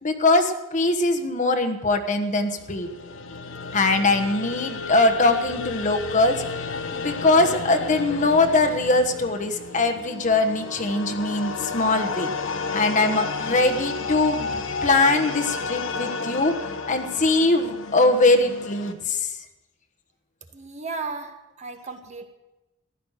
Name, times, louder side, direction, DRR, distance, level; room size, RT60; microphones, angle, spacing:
voice 1, 0.0-2.9 3.7-12.3 12.7-19.3, left 2 dB, 40° left, 5 dB, 1.3 m, -22 dB
hiddenpersuader Remix Metal Gong, 2.5-18.9, left 4 dB, 85° left, 1.2 m, -32 dB
voice 2, 20.5-22.3, right 4 dB, 35° right, 5 dB, 1.5 m, -35 dB
15.5 x 11.5 x 6.5 m, 1.0 s
head